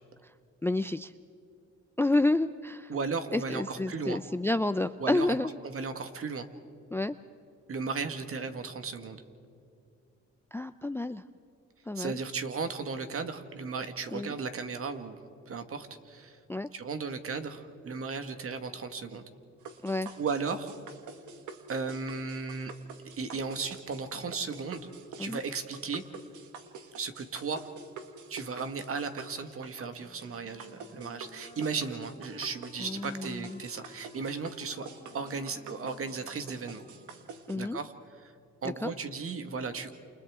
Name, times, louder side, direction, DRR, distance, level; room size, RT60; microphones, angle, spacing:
voice 1, 0.6-1.1 2.0-2.9 3.3-5.5 6.9-7.1 10.5-11.2 11.9-12.2 14.1-14.3 16.5-16.7 19.8-20.1 25.2-25.4 32.8-33.6 37.5-37.8 38.8-38.9, left 2 dB, 10° left, 14 dB, 0.4 m, -30 dB
voice 2, 2.9-4.2 5.0-5.4 5.6-6.5 7.7-9.2 12.0-15.2 15.5-16.4 16.7-19.2 20.2-20.7 21.7-22.7 23.2-24.9 25.2-26.0 26.9-27.7 28.3-34.9 35.1-36.8 37.6-37.9 38.2-38.3 38.6-39.9, right 4 dB, 45° right, 8 dB, 1.8 m, -35 dB
sound 1, 19.7-37.6, right 5 dB, 75° right, 1.8 m, -47 dB
Wind instrument woodwind instrument, 30.0-37.5, left 3 dB, 25° left, 1.7 m, -55 dB
30.0 x 28.5 x 3.7 m, 2.5 s
cardioid pair, 90°, 30 cm